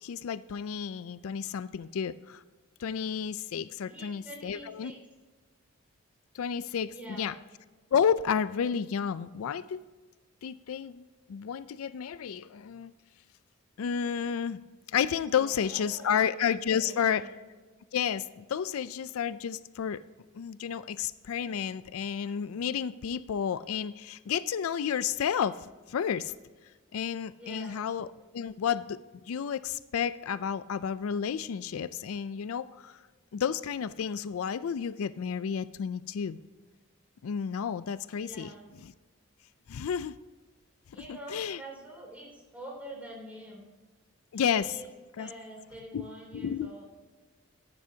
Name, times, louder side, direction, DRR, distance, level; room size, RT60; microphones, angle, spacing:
voice 1, 0.0-2.4 2.8-4.9 6.3-7.3 7.9-9.8 10.4-11.0 11.3-12.9 13.8-14.6 14.9-17.3 17.9-20.0 20.3-25.6 25.9-26.3 26.9-28.1 28.3-29.0 29.3-33.0 33.3-36.4 37.2-38.5 38.8-38.9 39.7-40.2 41.3-41.6 44.3-44.8 45.2-45.3 45.9-46.7, left 7 dB, 85° left, 16 dB, 0.4 m, -31 dB
voice 2, 3.8-5.0 6.9-7.3 15.3-16.2 16.6-17.3 27.4-27.8 38.2-38.7 40.9-43.7 44.3-44.9 45.2-46.8, right 1 dB, 5° right, -2 dB, 3.1 m, -46 dB
14.5 x 10.5 x 2.8 m, 1.3 s
head